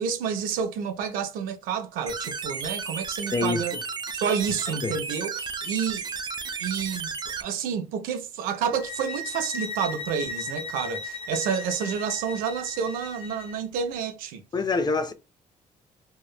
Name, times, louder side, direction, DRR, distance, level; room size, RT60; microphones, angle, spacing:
voice 1, 0.0-3.7 4.2-6.2 6.6-7.1 7.4-14.4, right 7 dB, 90° right, 0.5 m, -29 dB
sound 1, 2.1-7.4, right 5 dB, 30° right, 0.4 m, -33 dB
voice 2, 3.3-3.6 4.8-4.9 14.5-15.1, left 3 dB, 30° left, 0.4 m, -25 dB
sound 2, 8.7-13.6, left 3 dB, 45° left, 1.5 m, -36 dB
2.8 x 2.0 x 2.3 m
cardioid pair, 75°, 14 cm